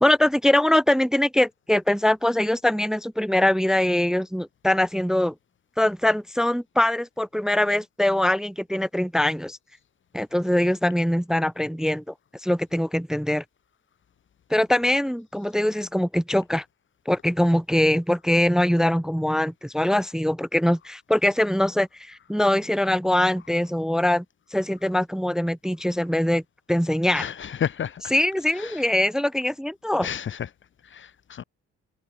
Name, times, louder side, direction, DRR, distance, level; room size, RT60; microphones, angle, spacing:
voice 1, 0.0-5.3 5.8-9.6 10.1-12.0 12.4-13.4 14.5-16.6 17.1-24.2 24.5-26.4 26.7-27.3 28.1-30.1, left 1 dB, ahead, 0.6 m, -22 dB
voice 2, 27.1-28.0 28.6-28.8 30.0-30.5 30.9-31.4, left 8 dB, 40° left, 0.6 m, -31 dB
cardioid pair, 90°, 30 cm